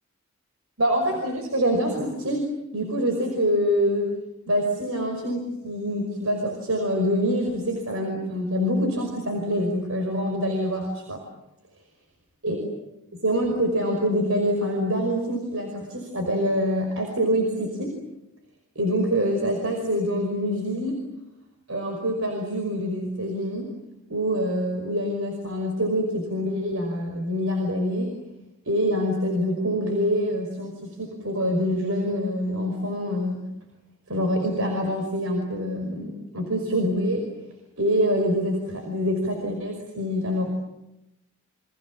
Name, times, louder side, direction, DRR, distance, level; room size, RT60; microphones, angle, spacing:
voice 1, 0.8-2.4 2.7-4.1 4.5-11.2 12.4-12.6 13.1-17.9 18.8-21.0 21.7-23.7 24.1-28.1 28.7-33.4 34.1-37.2 37.8-40.5, equal, 70° right, 3 dB, 5.4 m, -25 dB
30.0 x 26.5 x 7.4 m, 0.88 s
head